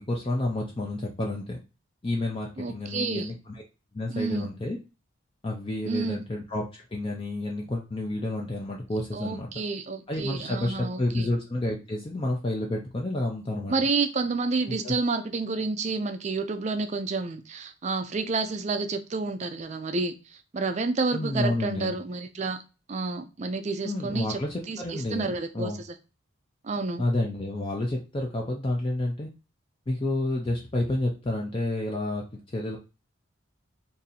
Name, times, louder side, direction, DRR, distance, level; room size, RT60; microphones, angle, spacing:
voice 1, 0.0-1.6 2.0-3.6 3.9-4.8 5.4-9.5 10.1-13.7 14.7-14.9 21.1-21.9 23.8-25.8 27.0-29.3 29.9-32.8, left 1 dB, 25° left, 0.5 m, -30 dB
voice 2, 2.6-3.3 4.1-4.5 5.8-6.2 9.1-11.3 13.7-22.6 22.9-24.4 24.7-25.7 26.6-27.0, right 3 dB, 35° right, 0.4 m, -29 dB
2.7 x 2.7 x 4.0 m
head